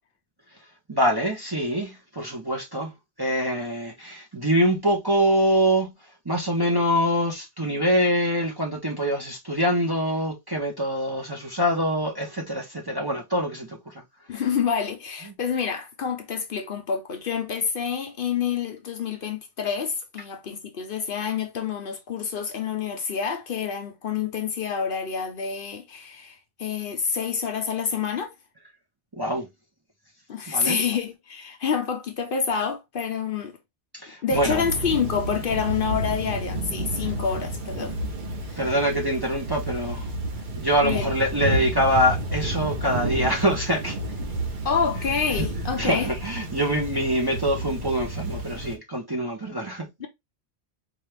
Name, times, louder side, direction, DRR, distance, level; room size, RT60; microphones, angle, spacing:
voice 1, 0.9-2.9 3.2-5.9 6.3-13.9 29.2-29.5 30.5-30.8 33.9-34.6 38.6-40.1 40.6-44.0 45.4-45.5 45.8-49.9, equal, 25° right, 0.6 m, -24 dB
voice 2, 14.3-28.3 30.3-33.6 34.2-38.0 38.5-38.6 40.8-41.1 44.6-46.1 50.0-50.1, left 6 dB, 60° left, 0.8 m, -28 dB
Thunder / Rain, 34.3-48.8, right 1 dB, 50° right, 0.9 m, -31 dB
4.5 x 2.4 x 3.2 m
omnidirectional pair, 1.1 m